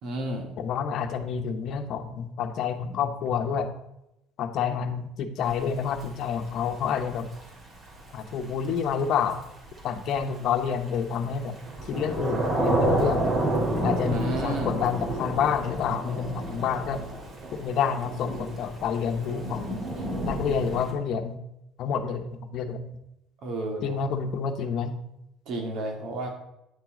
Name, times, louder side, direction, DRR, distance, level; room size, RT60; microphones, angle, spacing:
voice 1, 0.0-0.5 14.1-14.7 23.4-24.0 25.5-26.3, right 1 dB, 65° right, 2 dB, 2.1 m, -31 dB
voice 2, 0.6-3.7 4.4-7.3 8.1-9.4 9.8-11.6 11.9-13.2 13.7-17.0 17.5-19.8 20.3-21.4 21.8-22.8 23.8-24.9, left 7 dB, 60° left, 7 dB, 0.9 m, -28 dB
Thunder / Rain, 5.4-20.9, right 1 dB, 40° right, 2.4 m, -30 dB
9.2 x 6.1 x 3.8 m, 0.86 s
supercardioid pair, 100°, 0 cm